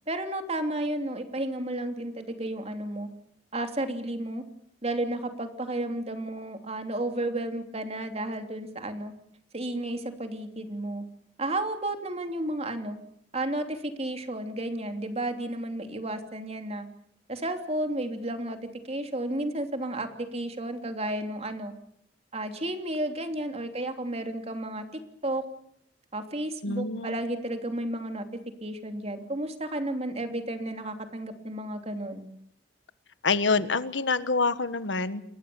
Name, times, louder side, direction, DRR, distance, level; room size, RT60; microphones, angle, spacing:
voice 1, 0.1-3.1 3.5-4.4 4.8-9.1 9.5-11.0 11.4-13.0 13.3-16.9 17.3-18.6 18.8-21.7 22.3-24.8 25.2-25.4 26.1-28.2 28.6-32.3, right 1 dB, 35° right, 6 dB, 3.1 m, -32 dB
voice 2, 26.6-27.2 33.2-35.2, left 4 dB, 90° left, 13 dB, 1.4 m, -26 dB
29.0 x 22.0 x 7.1 m, 0.72 s
head